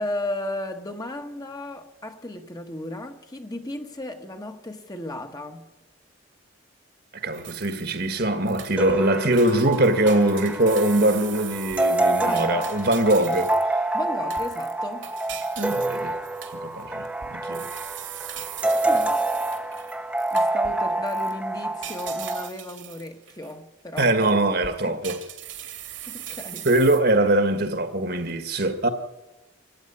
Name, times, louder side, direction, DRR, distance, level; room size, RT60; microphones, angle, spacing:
voice 1, 0.0-5.7 12.2-12.7 13.9-15.1 18.8-19.3 20.3-24.4 24.8-25.0 26.1-26.7, left 1 dB, 20° left, 1.4 m, -34 dB
voice 2, 7.1-13.6 15.6-16.1 16.5-17.7 24.0-25.2 26.7-28.9, right 1 dB, 55° right, 1.8 m, -22 dB
sound 1, 7.3-8.1 8.5-9.1 9.3-13.7 14.3-20.8 21.1-21.3 21.8-23.5 24.0-24.1 24.6-27.0, right 11 dB, 75° right, 2.7 m, -40 dB
sound 2, 8.8-22.5, right 2 dB, 5° right, 1.0 m, -27 dB
25.0 x 15.0 x 9.9 m
head